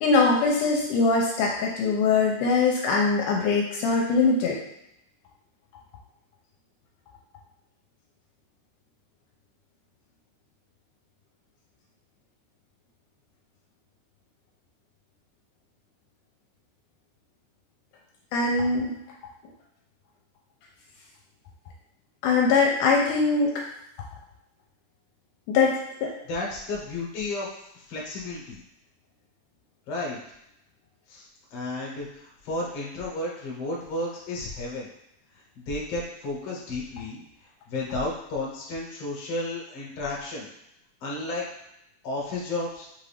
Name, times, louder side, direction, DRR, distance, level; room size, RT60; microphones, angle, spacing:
voice 1, 0.0-4.6 18.3-18.9 22.2-23.5 25.5-26.1, left 4 dB, 80° left, -2 dB, 2.1 m, -22 dB
voice 2, 26.3-28.6 29.9-30.2 31.1-31.3 31.5-34.9 35.6-37.2 37.7-40.5 41.0-41.4 42.0-42.9, left 2 dB, 60° left, -3 dB, 1.8 m, -32 dB
5.5 x 2.5 x 3.3 m, 0.82 s
omnidirectional pair, 3.7 m